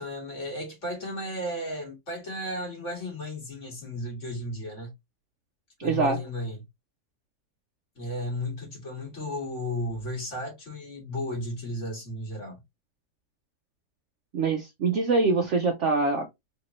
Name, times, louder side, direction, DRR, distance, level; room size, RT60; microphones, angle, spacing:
voice 1, 0.0-4.9 5.8-6.6 8.0-12.6, left 1 dB, 45° left, 2.2 m, -34 dB
voice 2, 5.8-6.2 14.3-16.3, right 4 dB, 60° right, 0.8 m, -24 dB
4.3 x 2.9 x 3.0 m
omnidirectional pair, 1.8 m